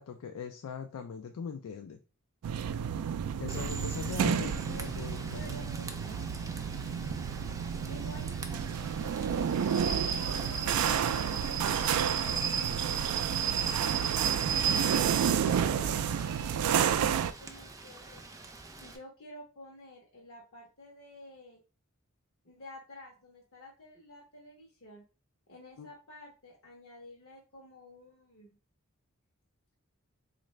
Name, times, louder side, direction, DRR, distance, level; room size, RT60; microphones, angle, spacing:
voice 1, 0.0-2.0 3.4-4.6 4.9-5.6 25.8-25.9, left 6 dB, 75° left, 6 dB, 0.4 m, -40 dB
sound 1, 2.4-17.3, right 8 dB, 90° right, 0.3 m, -31 dB
Rain / Train, 3.5-19.0, right 6 dB, 15° right, 0.4 m, -37 dB
voice 2, 4.2-5.1 5.4-6.0 7.9-11.7 12.2-14.8 15.7-18.3 18.7-21.6 22.4-25.0 25.5-28.6, left 1 dB, 60° left, -5 dB, 0.9 m, -51 dB
3.9 x 2.5 x 3.2 m, 0.34 s
head